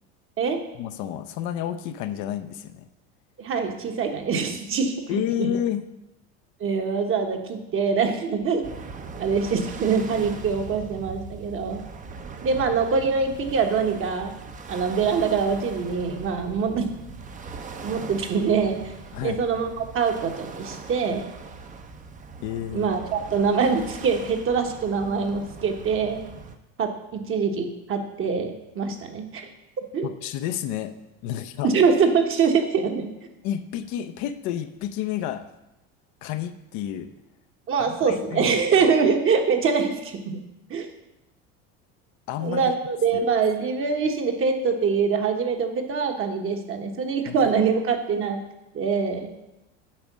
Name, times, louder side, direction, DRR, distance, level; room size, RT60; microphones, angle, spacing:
voice 1, 0.8-2.8 5.1-5.8 19.1-19.4 22.4-22.9 30.0-30.9 31.2-31.7 33.4-35.5 36.2-37.1 37.8-38.5 42.3-42.7 47.3-47.4, left 10 dB, 60° left, 9 dB, 0.7 m, -30 dB
voice 2, 3.4-5.5 6.6-8.6 9.2-11.8 12.4-14.3 14.7-16.9 17.8-18.9 19.2-21.3 22.7-26.3 26.8-29.5 29.9-30.1 31.6-33.1 37.7-40.4 40.7-40.9 42.4-48.4 48.7-49.3, right 5 dB, 40° right, 4 dB, 1.3 m, -24 dB
sound 1, 8.6-26.6, right 4 dB, 25° right, 0.7 m, -40 dB
8.7 x 5.1 x 6.1 m, 0.92 s
supercardioid pair, 105°, 32 cm